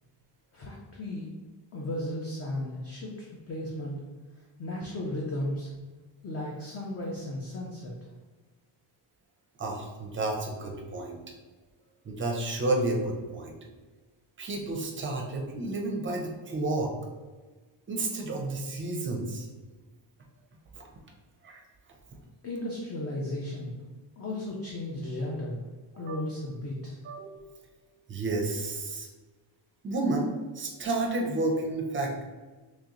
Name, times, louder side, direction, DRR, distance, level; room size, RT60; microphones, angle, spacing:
voice 1, 0.5-1.3 1.7-4.0 4.4-5.7 6.2-7.9 22.4-23.7 24.2-25.6 26.0-27.0, left 1 dB, 30° left, -3 dB, 0.5 m, -35 dB
voice 2, 9.6-11.2 12.0-13.5 14.4-16.9 17.9-19.5 20.7-20.8 21.4-21.6 25.9-26.2 27.0-27.5 28.1-29.1 29.8-32.2, right 2 dB, 25° right, 0 dB, 0.5 m, -31 dB
3.1 x 3.0 x 3.7 m, 1.3 s
cardioid pair, 175°, 47 cm